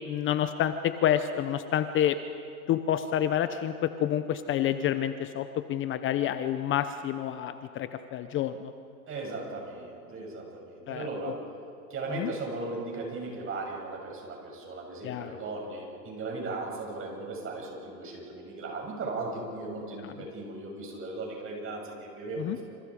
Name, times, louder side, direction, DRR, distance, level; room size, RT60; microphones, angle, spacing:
voice 1, 0.1-2.2 2.7-8.7 10.9-11.3 12.1-12.3 15.0-15.4 20.0-20.1 22.4-22.6, left 10 dB, 25° left, 11 dB, 0.8 m, -29 dB
voice 2, 9.1-11.4 11.9-22.6, right 3 dB, 25° right, 0 dB, 7.2 m, -37 dB
28.0 x 27.5 x 5.0 m, 2.6 s
hypercardioid pair, 120°, 50 cm